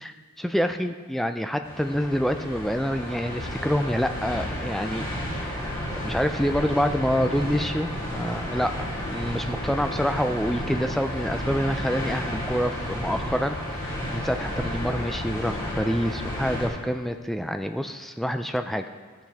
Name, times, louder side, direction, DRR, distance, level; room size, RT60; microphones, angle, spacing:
voice 1, 0.0-5.0 5.4-5.8 6.0-18.8, equal, ahead, 7 dB, 0.3 m, -27 dB
sound 1, 1.6-16.7, equal, 15° left, 2.6 m, -32 dB
14.0 x 7.5 x 3.5 m, 1.6 s
head